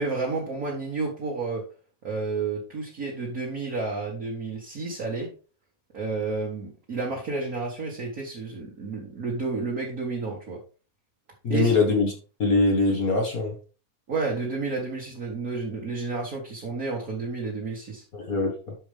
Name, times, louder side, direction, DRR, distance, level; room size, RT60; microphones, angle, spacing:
voice 1, 0.0-1.6 2.0-5.3 5.9-10.6 11.5-11.7 14.1-18.0, right 3 dB, 40° right, -3 dB, 1.5 m, -31 dB
voice 2, 11.4-12.1 12.4-13.5 18.1-18.8, left 3 dB, 45° left, 1 dB, 1.3 m, -23 dB
12.0 x 4.8 x 3.5 m, 0.36 s
omnidirectional pair, 3.5 m